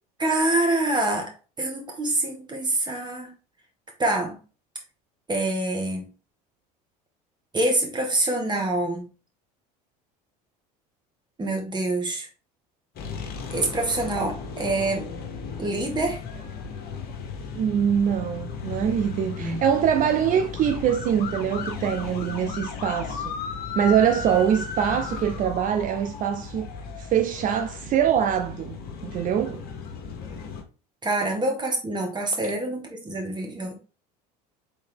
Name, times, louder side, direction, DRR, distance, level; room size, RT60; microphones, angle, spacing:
voice 1, 0.2-1.3 1.6-3.3 4.0-4.4 5.3-6.0 7.5-9.0 11.4-12.3 13.5-15.1 15.6-16.2 19.4-19.6 31.0-33.7, right 2 dB, 20° right, 1.7 m, -26 dB
sound 1, 13.0-30.6, left 5 dB, 50° left, 1.1 m, -35 dB
voice 2, 17.6-23.4 23.8-26.7 27.0-29.6, right 9 dB, 40° right, 0.5 m, -24 dB
4.0 x 3.9 x 3.5 m
hypercardioid pair, 85°, 20 cm